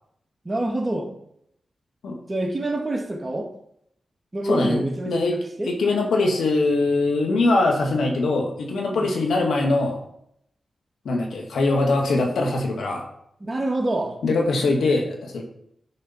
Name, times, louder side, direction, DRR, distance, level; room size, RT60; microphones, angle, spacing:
voice 1, 0.4-1.1 2.3-3.5 4.3-5.7 8.9-9.2 13.4-14.2, right 1 dB, 30° right, 1 dB, 1.9 m, -27 dB
voice 2, 4.5-5.4 5.7-10.0 11.1-13.1 14.2-15.4, left 2 dB, 90° left, 1 dB, 1.9 m, -22 dB
10.0 x 4.2 x 5.6 m, 0.73 s
cardioid pair, 70°, 0 cm